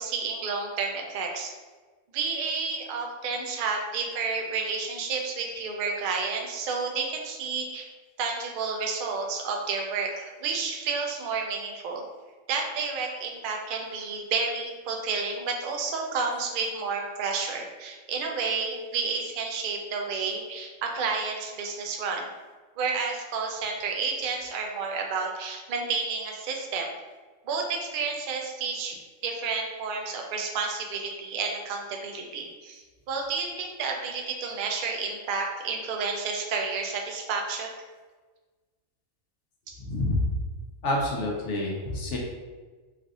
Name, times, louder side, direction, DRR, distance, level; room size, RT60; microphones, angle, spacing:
voice 1, 0.0-1.5 2.1-7.9 8.2-12.0 12.5-22.2 22.8-26.9 27.5-29.0 29.2-37.7 39.7-39.8, right 4 dB, 65° right, 1 dB, 0.5 m, -30 dB
voice 2, 39.8-40.2 40.8-42.2, left 2 dB, 65° left, -2 dB, 1.0 m, -28 dB
3.3 x 2.5 x 2.5 m, 1.3 s
omnidirectional pair, 1.3 m